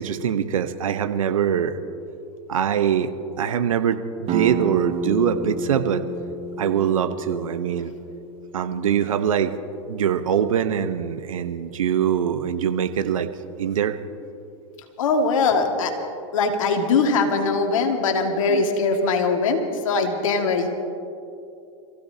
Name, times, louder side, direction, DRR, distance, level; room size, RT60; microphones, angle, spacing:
voice 1, 0.0-1.8 2.5-3.1 3.4-6.0 6.6-7.9 8.5-9.5 9.9-13.3 13.6-14.0 18.5-18.6, right 8 dB, 85° right, 10 dB, 1.0 m, -23 dB
sound 1, 4.3-9.7, right 3 dB, 35° right, 1.0 m, -31 dB
voice 2, 15.0-15.9 16.3-19.6 19.8-20.7, left 4 dB, 80° left, 4 dB, 2.0 m, -21 dB
26.5 x 15.5 x 2.8 m, 2.7 s
hypercardioid pair, 105°, 17 cm